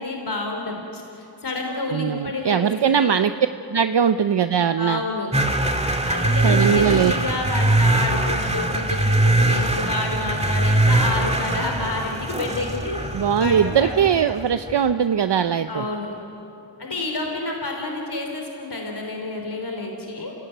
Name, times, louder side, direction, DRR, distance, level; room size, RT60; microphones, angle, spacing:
voice 1, 0.0-3.2 4.8-5.3 6.1-13.0 13.4-13.9 15.7-16.2 16.8-20.3, left 2 dB, 60° left, 2 dB, 3.6 m, -29 dB
voice 2, 1.9-3.3 3.7-5.0 6.4-7.1 13.1-15.9, right 8 dB, 65° right, 9 dB, 0.7 m, -20 dB
sound 1, 5.3-14.7, right 1 dB, 15° right, 2.0 m, -22 dB
27.5 x 17.5 x 9.3 m, 2.8 s
cardioid pair, 45°, 45 cm